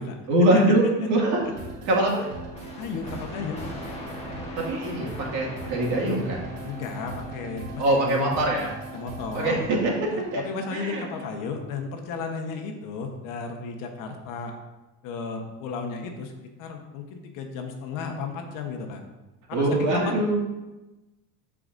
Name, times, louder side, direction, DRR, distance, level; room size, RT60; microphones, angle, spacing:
voice 1, 0.3-0.8 1.1-1.4 1.9-2.3 4.6-6.5 7.8-8.7 9.3-9.9 10.3-10.4 10.7-11.0 19.5-20.4, right 1 dB, 50° right, -3 dB, 2.3 m, -23 dB
sound 1, 1.4-11.8, right 2 dB, 70° right, 2.3 m, -41 dB
sound 2, 2.5-8.1, left 1 dB, 15° left, 1.4 m, -41 dB
voice 2, 2.7-3.6 6.6-8.3 8.9-9.7 10.1-14.5 15.0-16.3 16.6-19.0 19.5-20.1, left 4 dB, 60° left, 3 dB, 1.3 m, -33 dB
14.0 x 4.9 x 2.7 m, 1.1 s
cardioid pair, 150°, 36 cm